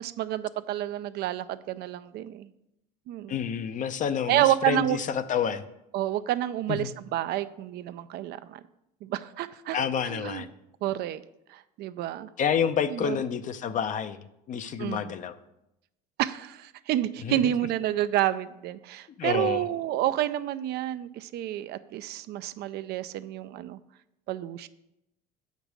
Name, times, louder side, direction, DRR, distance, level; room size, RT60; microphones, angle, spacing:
voice 1, 0.0-2.5 3.1-3.4 4.3-5.0 5.9-8.6 9.0-9.8 10.0-10.4 10.8-11.2 11.5-12.3 12.9-13.2 14.8-15.1 16.2-23.8 24.3-24.7, right 13 dB, 55° right, 13 dB, 0.5 m, -29 dB
voice 2, 3.3-5.6 6.7-6.9 9.7-10.5 12.4-15.3 17.2-17.5 19.2-19.6, left 8 dB, 40° left, 12 dB, 0.6 m, -29 dB
7.9 x 5.3 x 6.2 m, 0.86 s
supercardioid pair, 105°, 20 cm